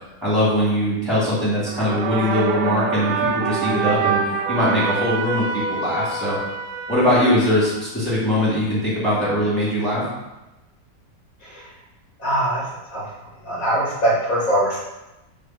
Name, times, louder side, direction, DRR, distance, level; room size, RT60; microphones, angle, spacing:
voice 1, 0.2-4.2 4.5-6.4 6.9-10.0, left 1 dB, ahead, -8 dB, 2.5 m, -21 dB
sound 1, 1.7-8.0, right 5 dB, 90° right, 1.3 m, -26 dB
voice 2, 11.4-11.7 12.2-14.8, right 1 dB, 50° left, -6 dB, 2.8 m, -23 dB
6.6 x 3.6 x 6.1 m, 1.0 s
omnidirectional pair, 2.0 m